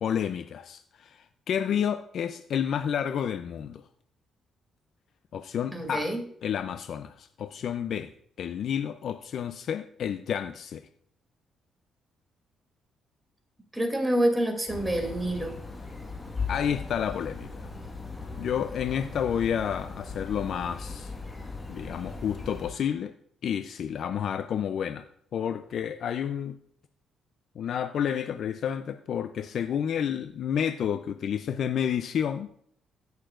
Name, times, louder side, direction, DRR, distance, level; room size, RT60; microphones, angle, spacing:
voice 1, 0.0-3.8 5.3-6.1 6.4-8.1 8.4-10.8 16.5-17.7 18.4-21.1 21.7-23.1 23.4-25.0 25.3-26.6 27.6-32.5, left 8 dB, 65° left, 10 dB, 0.5 m, -30 dB
voice 2, 5.7-6.2 13.7-15.6, right 1 dB, 10° right, 3 dB, 2.6 m, -27 dB
sound 1, 14.7-22.7, left 4 dB, 20° left, 1.5 m, -38 dB
16.0 x 6.6 x 2.5 m, 0.64 s
cardioid pair, 90°, 0 cm